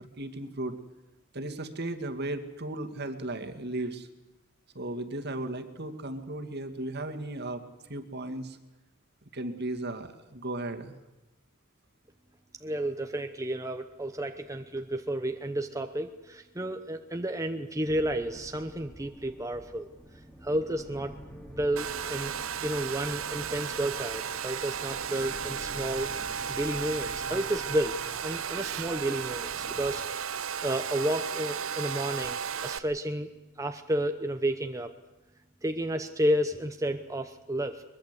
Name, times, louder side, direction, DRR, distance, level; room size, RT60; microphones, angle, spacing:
voice 1, 0.2-0.8 1.3-4.1 4.7-7.6 7.9-8.6 9.3-10.9, right 2 dB, 50° right, 6 dB, 2.2 m, -35 dB
voice 2, 12.6-19.9 20.4-21.1 21.5-22.3 22.6-26.1 26.5-33.3 33.6-34.9 35.6-37.8, right 1 dB, 15° right, 6 dB, 1.0 m, -31 dB
sound 1, 17.9-29.9, equal, 5° left, 2.7 m, -48 dB
Domestic sounds home sounds, 21.8-32.8, right 7 dB, 70° right, 0.9 m, -34 dB
23.0 x 22.0 x 8.3 m, 1.0 s
head